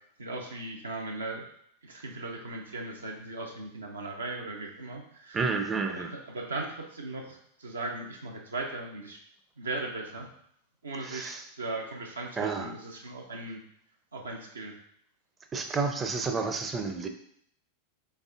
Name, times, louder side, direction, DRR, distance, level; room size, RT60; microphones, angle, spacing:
voice 1, 0.2-1.4 1.8-5.4 5.9-9.2 9.6-10.3 10.8-13.6 14.1-14.7, right 2 dB, 75° right, 0 dB, 0.6 m, -38 dB
voice 2, 5.3-6.1 11.0-11.4 12.4-12.8 15.5-17.1, right 4 dB, 20° right, 6 dB, 0.5 m, -30 dB
5.3 x 3.6 x 2.5 m, 0.69 s
figure-of-eight pair, 90°, 0 cm